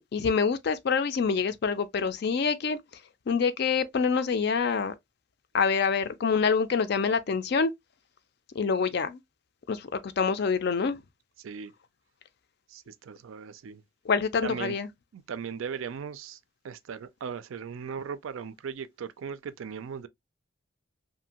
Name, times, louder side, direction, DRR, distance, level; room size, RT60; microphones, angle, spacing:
voice 1, 0.0-2.8 3.3-4.9 5.5-7.7 8.6-9.2 9.7-9.8 10.2-11.0 14.1-14.9, left 5 dB, 55° left, 0.4 m, -26 dB
voice 2, 11.4-11.7 12.7-13.8 14.4-14.7 15.1-16.4 16.6-20.1, right 6 dB, 80° right, 0.4 m, -38 dB
2.7 x 2.5 x 2.8 m
head